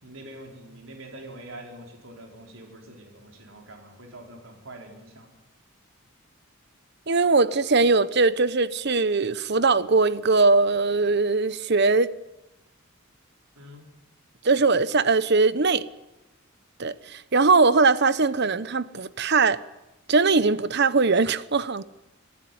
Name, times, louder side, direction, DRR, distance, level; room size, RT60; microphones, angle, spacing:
voice 1, 0.0-5.3 13.6-13.8, right 1 dB, 70° right, 4.9 m, -44 dB
voice 2, 7.1-12.1 14.4-15.9 16.8-19.6 20.1-21.8, right 3 dB, 55° right, 1.0 m, -21 dB
26.0 x 16.0 x 9.5 m
head